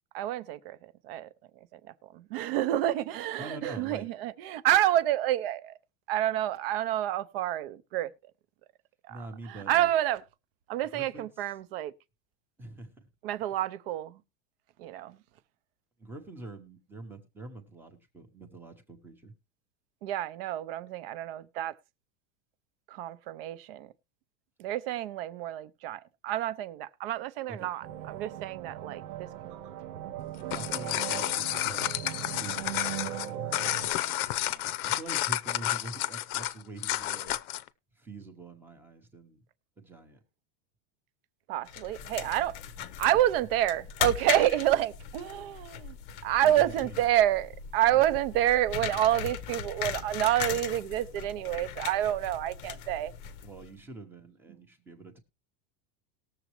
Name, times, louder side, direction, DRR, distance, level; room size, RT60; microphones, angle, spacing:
voice 1, 0.1-1.3 1.7-1.8 2.1-5.8 6.1-8.1 9.1-10.2 10.7-11.9 13.2-14.2 14.8-15.2 20.0-21.7 22.9-23.9 24.6-29.5 41.5-42.6 43.0-46.0 46.2-53.1, right 13 dB, 40° right, 0.6 m, -28 dB
voice 2, 3.4-4.1 9.1-9.9 10.9-11.3 12.6-13.1 13.5-13.6 16.0-19.3 27.5-27.7 30.5-37.4 37.9-39.4 39.8-40.2 43.0-43.1 46.4-47.0 47.9-48.1 53.4-55.2, right 2 dB, 5° right, 0.7 m, -45 dB
sound 1, 27.8-33.9, right 12 dB, 90° right, 1.0 m, -39 dB
sound 2, 30.3-37.7, left 15 dB, 75° left, 0.8 m, -31 dB
sound 3, 41.7-53.7, left 9 dB, 35° left, 0.7 m, -38 dB
19.5 x 7.1 x 3.0 m
supercardioid pair, 180°, 44 cm